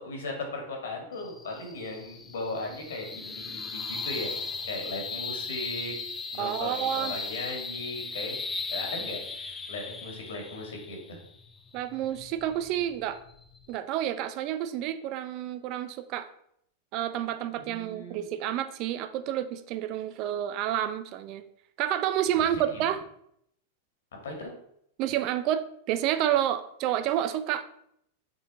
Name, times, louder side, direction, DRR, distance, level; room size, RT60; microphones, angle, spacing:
voice 1, 0.0-5.9 6.3-8.4 8.7-11.2 17.6-18.3 22.5-22.8 24.2-24.5, left 2 dB, 85° left, 2 dB, 2.2 m, -37 dB
sound 1, 1.1-13.8, left 4 dB, 15° left, 0.6 m, -37 dB
voice 2, 6.4-7.1 11.7-13.2 13.7-16.3 16.9-21.4 21.8-23.0 25.0-27.6, right 11 dB, 45° right, 12 dB, 0.5 m, -29 dB
6.9 x 4.0 x 4.1 m, 0.72 s
hypercardioid pair, 130°, 0 cm